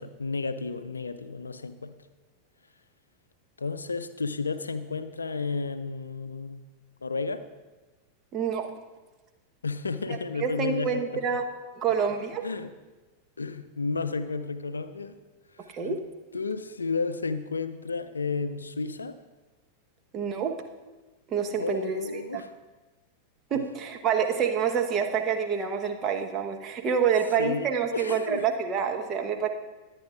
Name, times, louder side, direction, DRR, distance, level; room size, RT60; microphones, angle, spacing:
voice 1, 0.0-1.9 3.6-6.6 7.0-7.5 9.6-11.2 12.0-12.2 12.4-12.7 13.4-15.2 15.5-16.0 16.3-19.2 21.6-22.5 23.5-23.6 27.4-28.5, left 4 dB, 75° left, 12 dB, 0.5 m, -32 dB
voice 2, 8.3-8.7 10.4-11.4 11.8-12.4 15.7-16.0 20.1-20.6 21.3-22.4 23.5-29.5, right 7 dB, 30° right, 4 dB, 1.1 m, -27 dB
21.5 x 9.0 x 2.4 m, 1.2 s
figure-of-eight pair, 90°, 0 cm